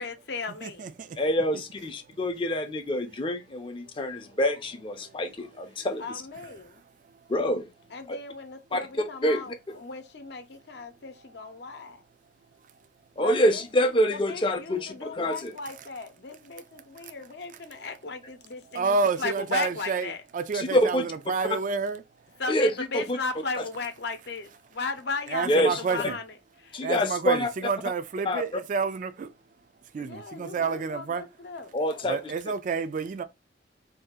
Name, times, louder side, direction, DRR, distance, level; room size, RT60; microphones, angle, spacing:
voice 1, 0.0-0.9 6.0-6.8 7.9-12.0 13.2-13.6 14.1-20.2 22.4-26.2 26.6-26.8 30.0-32.2, left 4 dB, 65° left, 0.7 m, -36 dB
voice 2, 0.6-1.2 5.0-5.1 6.4-6.5 16.8-16.9 18.7-22.0 25.3-26.2 26.8-29.3 29.9-31.2 32.1-33.2, right 5 dB, 45° right, 0.3 m, -29 dB
voice 3, 1.2-6.2 7.3-7.7 8.7-8.8 9.2-9.8 13.2-15.5 20.5-21.0 22.5-23.2 23.6-23.7 25.4-25.8 26.7-27.5 28.2-28.4 31.7-32.2, equal, 30° left, 0.5 m, -26 dB
2.7 x 2.3 x 3.5 m
head